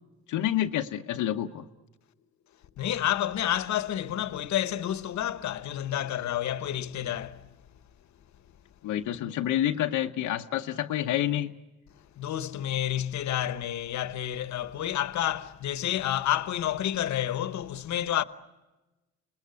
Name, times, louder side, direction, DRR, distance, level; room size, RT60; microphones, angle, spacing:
voice 1, 0.3-1.7 8.8-11.5, left 12 dB, 90° left, 0.8 m, -28 dB
voice 2, 2.8-7.5 12.2-18.2, left 11 dB, 65° left, 1.0 m, -29 dB
28.5 x 19.5 x 9.6 m
cardioid pair, 90°, 30 cm